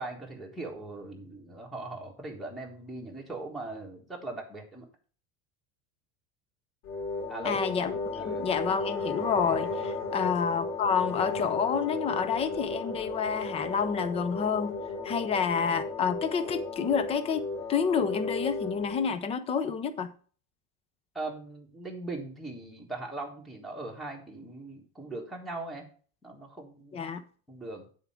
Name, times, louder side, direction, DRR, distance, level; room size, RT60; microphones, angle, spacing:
voice 1, 0.0-4.9 7.3-7.6 8.1-8.5 10.1-10.3 21.1-25.8 26.2-27.0 27.5-27.9, right 2 dB, ahead, 1.5 m, -40 dB
sound 1, 6.8-19.1, left 3 dB, 60° left, 2.9 m, -34 dB
voice 2, 7.4-7.9 8.2-14.8 15.0-20.1 26.9-27.2, left 6 dB, 20° left, 0.5 m, -29 dB
9.4 x 4.5 x 5.6 m
cardioid pair, 175°, 30 cm